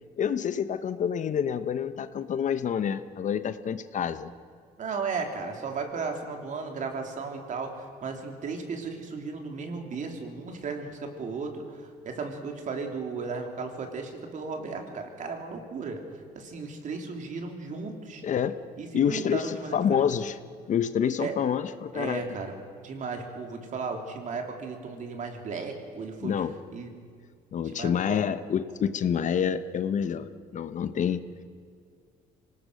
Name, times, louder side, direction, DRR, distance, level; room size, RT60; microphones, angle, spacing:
voice 1, 0.2-4.3 18.2-18.6 18.9-20.4 20.7-22.2 26.2-26.5 27.5-31.2, left 8 dB, 45° left, 13 dB, 0.9 m, -28 dB
voice 2, 4.8-16.0 16.3-18.2 18.8-20.0 21.2-21.3 21.9-22.5 22.8-26.3 26.7-26.9 27.7-28.2, right 4 dB, 50° right, 4 dB, 3.2 m, -35 dB
25.5 x 19.0 x 6.4 m, 2.1 s
cardioid pair, 110°, 17 cm